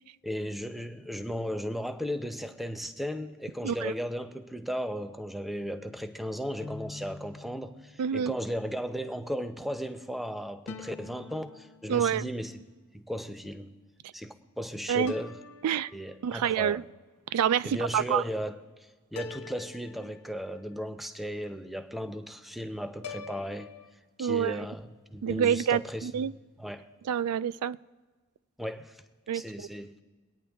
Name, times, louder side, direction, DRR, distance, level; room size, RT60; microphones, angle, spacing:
voice 1, 0.2-12.5 12.9-13.8 14.1-15.4 15.9-16.8 17.6-23.7 24.2-26.3 26.6-26.9 28.6-29.0 29.3-29.9, equal, ahead, 9 dB, 0.6 m, -36 dB
sound 1, 6.6-8.3 10.7-12.4 15.1-16.6 19.2-20.8 23.0-23.9, left 4 dB, 85° left, 0.6 m, -45 dB
voice 2, 8.0-8.3 11.9-12.2 14.9-15.1 15.6-15.9 16.2-16.8 17.3-18.2 24.2-24.7 25.2-26.3 27.1-27.8 29.3-29.7, right 8 dB, 90° right, 16 dB, 0.3 m, -27 dB
23.0 x 9.3 x 3.5 m, 1.4 s
head